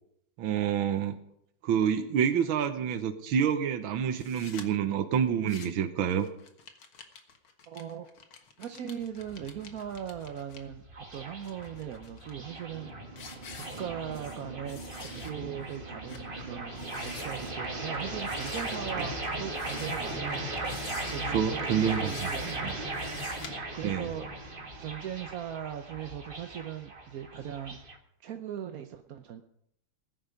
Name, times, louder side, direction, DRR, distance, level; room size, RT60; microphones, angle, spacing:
voice 1, 0.4-1.2 1.6-6.3 21.3-22.3 22.6-22.7 23.8-24.1, right 8 dB, 75° right, 7 dB, 1.8 m, -28 dB
sound 1, 4.1-4.7 5.3-5.9 6.2-10.6 11.1-12.3 12.8-12.9 13.2-14.4 14.7-15.3 15.7-15.8 16.1-16.3 16.7-17.5 18.2-18.8 19.5-20.2 20.6-21.3 21.9-22.6 22.9-23.5, left 6 dB, 80° left, 2.4 m, -48 dB
voice 2, 7.7-8.1 8.6-10.8 11.1-13.0 13.8-20.5 21.1-22.8 23.7-24.3 24.8-27.8 28.2-29.4, right 9 dB, 60° right, 5 dB, 1.0 m, -39 dB
sound 2, 9.0-28.0, right 2 dB, 25° right, 1.6 m, -37 dB
19.0 x 10.5 x 5.2 m, 0.75 s
omnidirectional pair, 2.3 m